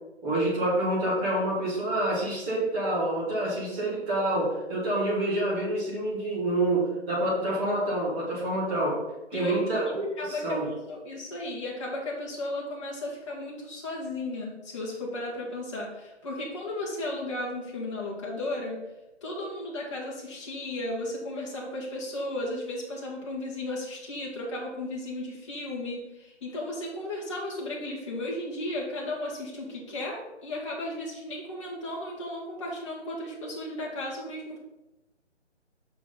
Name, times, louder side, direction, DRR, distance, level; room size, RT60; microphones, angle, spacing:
voice 1, 0.2-9.0 9.3-10.7, right 1 dB, 10° right, -6 dB, 1.5 m, -27 dB
voice 2, 10.2-18.8 19.2-34.6, left 1 dB, 25° left, -3 dB, 1.8 m, -35 dB
6.3 x 6.0 x 3.9 m, 0.98 s
figure-of-eight pair, 160°, 35 cm